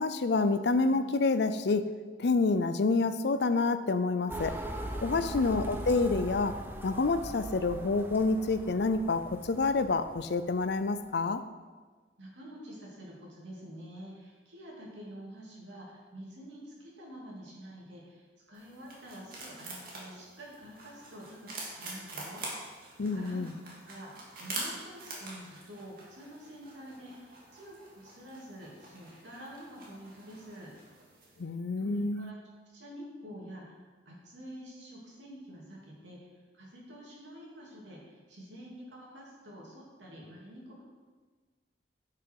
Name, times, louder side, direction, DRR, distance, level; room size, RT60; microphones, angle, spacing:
voice 1, 0.0-1.9 2.2-4.5 5.0-6.5 6.8-11.4 23.0-23.5 31.4-32.3, left 3 dB, 65° left, 11 dB, 0.5 m, -28 dB
sound 1, 4.3-10.8, right 1 dB, 10° right, 0.7 m, -40 dB
voice 2, 5.0-5.8 12.2-22.8 23.1-23.4 23.8-24.1 24.4-30.7 31.8-32.4 32.7-36.3 36.5-40.8, equal, 85° right, -4 dB, 3.0 m, -48 dB
sound 2, 18.5-31.4, right 2 dB, 50° right, 2.1 m, -45 dB
11.0 x 5.8 x 4.8 m, 1.4 s
head